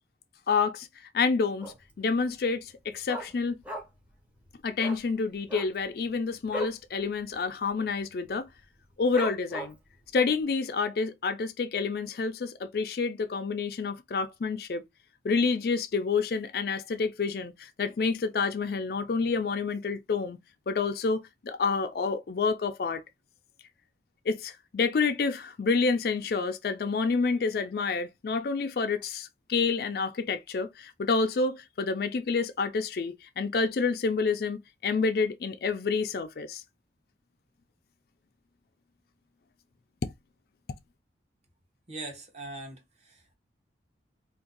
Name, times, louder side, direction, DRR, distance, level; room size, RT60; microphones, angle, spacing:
voice 1, 0.5-0.9 1.1-3.6 4.6-8.5 9.0-9.8 10.1-14.8 15.2-20.4 20.7-23.0 24.3-36.6, left 4 dB, 55° left, 0.4 m, -28 dB
Dog, 1.6-2.0 2.3-2.4 2.7-4.1 4.4-4.5 4.8-5.0 5.4-6.8 7.2-7.3 7.6-8.0 8.5-8.6 9.1-9.9 10.4-10.5, right 1 dB, 10° right, 0.6 m, -38 dB
voice 2, 41.9-43.3, right 2 dB, 35° right, 0.9 m, -41 dB
2.6 x 2.2 x 3.8 m
head